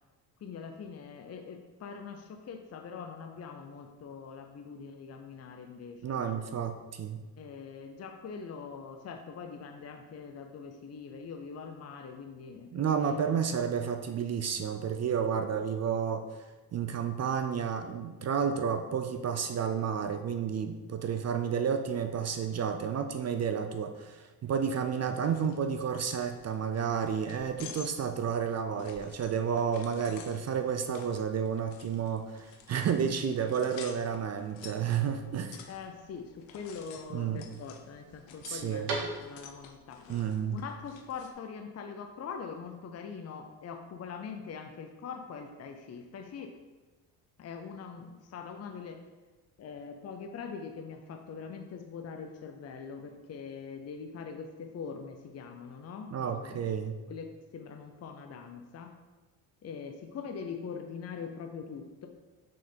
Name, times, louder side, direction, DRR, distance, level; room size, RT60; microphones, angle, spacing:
voice 1, 0.4-6.2 7.4-13.6 35.7-40.1 40.5-46.5 47.4-49.0 49.6-56.7 57.1-58.9 59.6-62.1, left 6 dB, 35° left, 4 dB, 0.7 m, -43 dB
voice 2, 6.0-7.2 12.7-16.2 16.7-35.6 37.1-37.4 38.5-38.9 40.1-40.6 56.1-57.0, right 7 dB, 35° right, 8 dB, 0.5 m, -31 dB
sound 1, 25.2-41.3, left 7 dB, 85° left, 0.8 m, -51 dB
sound 2, 31.2-39.7, right 2 dB, 60° right, 1.9 m, -45 dB
6.2 x 3.8 x 4.4 m, 1.2 s
supercardioid pair, 80°, 44 cm